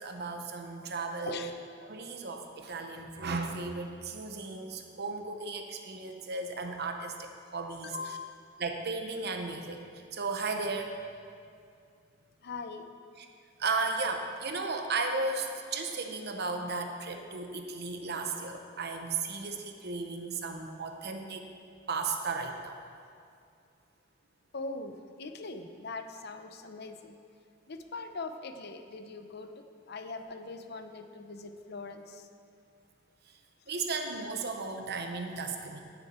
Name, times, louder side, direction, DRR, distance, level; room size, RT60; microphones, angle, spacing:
voice 1, 0.0-1.5 1.8-7.1 7.5-8.2 8.6-9.8 10.1-10.9 13.2-13.3 13.6-21.4 21.9-22.8 33.7-35.8, right 3 dB, 55° right, 5 dB, 0.9 m, -35 dB
voice 2, 7.8-8.5 12.4-12.9 24.5-27.1 27.7-29.5 29.9-32.3, left 3 dB, 55° left, 8 dB, 0.7 m, -41 dB
15.5 x 7.0 x 4.4 m, 2.4 s
head